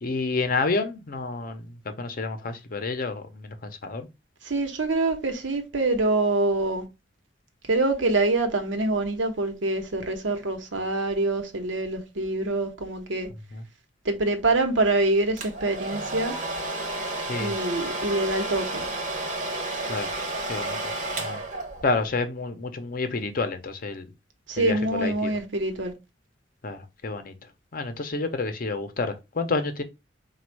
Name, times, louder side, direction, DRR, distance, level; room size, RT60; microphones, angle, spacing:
voice 1, 0.0-4.1 13.5-13.6 17.3-17.5 19.9-20.1 20.5-20.8 21.2-21.4 21.8-24.1 24.6-25.3 26.6-27.3 27.7-29.8, left 3 dB, 50° left, 0.7 m, -29 dB
voice 2, 4.4-6.8 7.7-13.3 14.0-16.4 17.4-18.8 24.5-25.9, right 2 dB, 85° right, 0.9 m, -25 dB
Domestic sounds home sounds, 15.4-22.1, right 2 dB, 45° right, 0.8 m, -31 dB
4.2 x 2.3 x 4.5 m
head